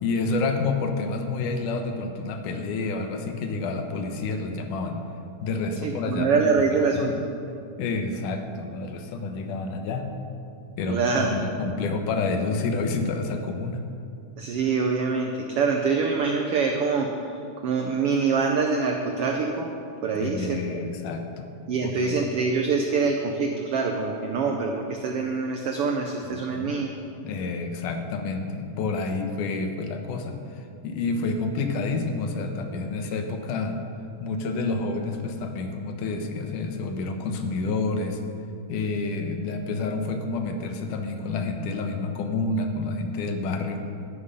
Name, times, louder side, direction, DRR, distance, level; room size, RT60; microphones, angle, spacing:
voice 1, 0.0-5.0 5.4-7.2 7.8-10.1 10.8-13.8 20.2-21.5 21.8-22.2 26.3-26.7 27.2-33.8 34.2-38.2 38.7-43.8, left 3 dB, 85° left, 5 dB, 2.5 m, -29 dB
voice 2, 5.8-7.2 10.9-11.3 14.4-17.1 17.6-19.7 20.0-20.6 21.7-26.9, right 4 dB, 80° right, 3 dB, 1.3 m, -25 dB
12.0 x 9.9 x 5.5 m, 2.6 s
omnidirectional pair, 3.6 m